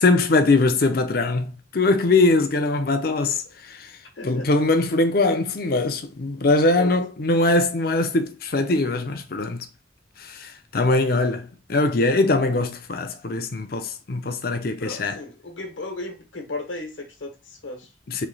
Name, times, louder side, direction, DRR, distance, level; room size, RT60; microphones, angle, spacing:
voice 1, 0.0-3.9 4.2-9.7 10.2-15.2 18.1-18.3, left 2 dB, 50° left, 0.5 m, -22 dB
voice 2, 4.2-4.5 6.3-6.9 11.2-11.4 14.8-17.9, left 2 dB, 75° left, 1.1 m, -36 dB
3.1 x 3.1 x 3.8 m
head